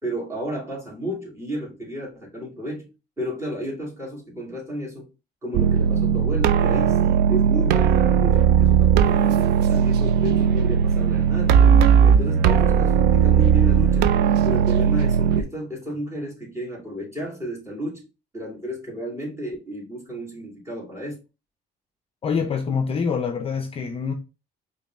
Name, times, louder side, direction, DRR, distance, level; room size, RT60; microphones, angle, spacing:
voice 1, 0.0-2.9 3.2-5.1 5.4-11.6 12.0-18.0 18.3-21.2, right 1 dB, 15° right, 2.3 m, -32 dB
sound 1, 5.5-15.4, right 7 dB, 75° right, 0.4 m, -18 dB
voice 2, 22.2-24.1, left 6 dB, 35° left, 0.5 m, -25 dB
5.0 x 2.8 x 2.4 m
cardioid pair, 110°, 17 cm